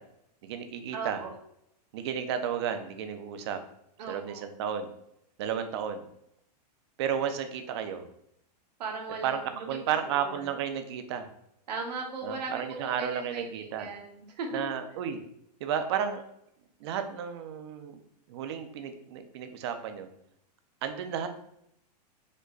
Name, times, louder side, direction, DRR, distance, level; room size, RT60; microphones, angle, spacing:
voice 1, 0.4-1.2 1.9-3.6 4.1-4.9 5.4-6.1 7.0-8.1 9.2-9.4 9.7-11.3 12.2-13.9 14.5-15.2 15.6-16.2 16.8-18.0 18.3-20.1 20.8-21.3, right 8 dB, 40° right, 8 dB, 0.5 m, -32 dB
voice 2, 0.9-1.3 4.0-4.5 8.8-9.8 10.1-10.5 11.7-14.5, right 4 dB, 80° right, 1 dB, 1.3 m, -38 dB
5.1 x 2.2 x 3.8 m, 0.76 s
supercardioid pair, 170°, 21 cm